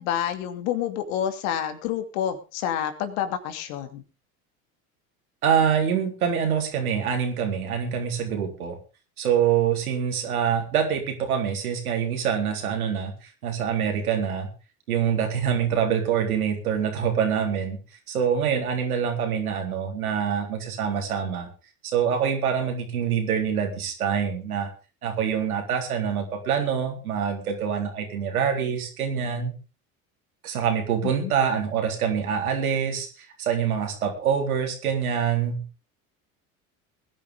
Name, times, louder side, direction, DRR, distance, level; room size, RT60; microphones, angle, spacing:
voice 1, 0.0-4.0 31.0-31.3, left 10 dB, 70° left, 7 dB, 2.7 m, -28 dB
voice 2, 5.4-8.8 9.2-13.1 13.4-14.5 14.9-17.8 18.1-21.5 21.8-24.7 25.0-29.5 30.4-35.6, right 7 dB, 90° right, 2 dB, 3.9 m, -25 dB
20.5 x 10.5 x 3.8 m, 0.33 s
hypercardioid pair, 75°, 42 cm